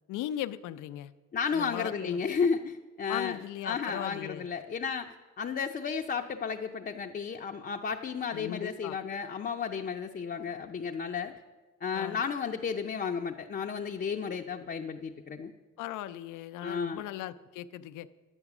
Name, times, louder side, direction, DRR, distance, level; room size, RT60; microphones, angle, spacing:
voice 1, 0.1-1.1 1.5-2.2 3.1-4.5 8.3-9.0 11.9-12.2 15.8-18.1, left 12 dB, 85° left, 13 dB, 0.5 m, -38 dB
voice 2, 1.3-3.4 3.6-11.4 11.8-15.5 16.6-17.0, left 6 dB, 35° left, 2 dB, 0.6 m, -33 dB
11.0 x 7.9 x 6.0 m, 1.3 s
cardioid pair, 90°, 30 cm